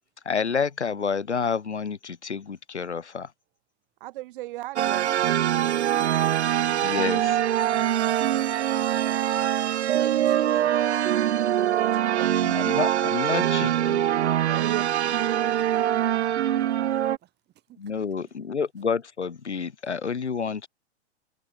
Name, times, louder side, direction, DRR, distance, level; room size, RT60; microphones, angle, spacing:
voice 1, 0.2-3.3 6.8-7.5 12.4-14.0 17.8-20.7, left 6 dB, 80° left, 4.8 m, -29 dB
voice 2, 4.0-5.3 10.2-10.4 11.5-12.3 14.5-14.8, right 17 dB, 50° right, 1.2 m, -36 dB
sound 1, 4.8-17.2, right 11 dB, 75° right, 0.5 m, -23 dB
voice 3, 9.9-10.7 14.4-17.3 17.7-17.8, right 14 dB, 30° right, 5.1 m, -44 dB
figure-of-eight pair, 105°, 34 cm